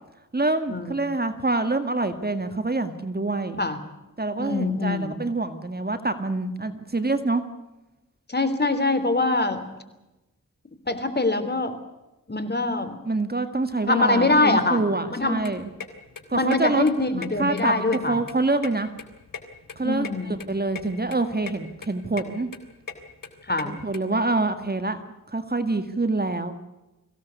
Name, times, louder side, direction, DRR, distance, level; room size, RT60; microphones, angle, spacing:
voice 1, 0.3-3.6 4.2-7.4 13.0-15.7 16.3-16.8 17.1-18.9 19.8-22.5 23.6-25.0 25.3-26.5, right 2 dB, 30° right, 9 dB, 2.1 m, -26 dB
voice 2, 4.4-5.1 8.3-9.6 10.9-11.7 12.3-13.0 13.9-14.8 15.1-15.4 16.3-18.2 19.8-20.3 23.5-23.7, left 2 dB, 30° left, 10 dB, 3.5 m, -23 dB
sound 1, 15.2-24.0, left 6 dB, 70° left, 3.6 m, -40 dB
23.5 x 17.0 x 8.3 m, 1.0 s
wide cardioid pair, 70°, 33 cm